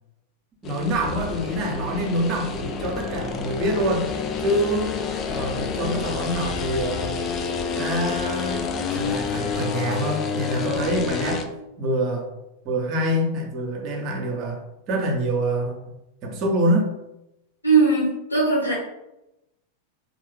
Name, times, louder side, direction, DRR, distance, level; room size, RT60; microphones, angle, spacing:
sound 1, 0.6-11.4, left 6 dB, 30° left, 0.4 m, -29 dB
voice 1, 0.6-4.1 4.4-5.0 5.3-7.2 7.7-8.6 8.9-11.4 11.8-12.3 12.6-14.6 14.9-15.8 16.2-16.9, right 1 dB, 35° right, 2 dB, 0.7 m, -25 dB
voice 2, 17.6-18.7, right 4 dB, 85° left, -6 dB, 1.3 m, -19 dB
3.5 x 2.5 x 3.3 m, 0.91 s
figure-of-eight pair, 90°, 0 cm